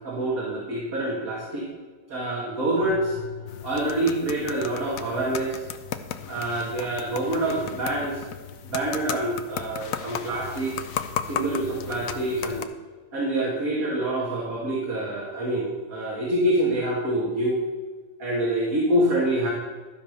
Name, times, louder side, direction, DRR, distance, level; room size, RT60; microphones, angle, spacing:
voice 1, 0.0-1.7 2.1-3.1 3.6-5.6 6.3-8.2 8.6-10.8 11.2-12.7 13.1-17.6 18.2-19.5, right 1 dB, 65° right, -5 dB, 2.3 m, -26 dB
sound 1, 2.8-4.2, left 9 dB, 30° left, 0.8 m, -40 dB
sound 2, 3.5-12.6, left 9 dB, 70° left, 1.0 m, -35 dB
12.5 x 5.1 x 6.6 m, 1.4 s
omnidirectional pair, 1.6 m